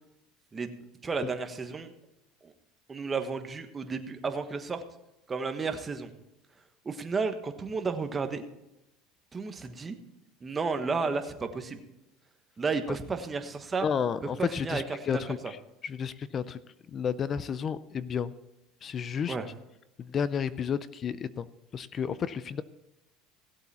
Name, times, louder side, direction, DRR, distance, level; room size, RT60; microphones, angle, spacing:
voice 1, 1.0-1.9 2.4-2.5 2.9-4.8 5.3-6.1 6.8-8.4 9.3-10.0 10.4-11.8 12.6-13.9 14.4-15.2 19.3-19.5, right 4 dB, 20° right, 7 dB, 1.2 m, -32 dB
voice 2, 13.8-16.6 16.9-18.3 18.8-19.4 20.0-21.5 21.7-22.6, left 7 dB, 35° left, 16 dB, 0.5 m, -32 dB
16.5 x 8.0 x 4.3 m, 0.92 s
supercardioid pair, 115°, 0 cm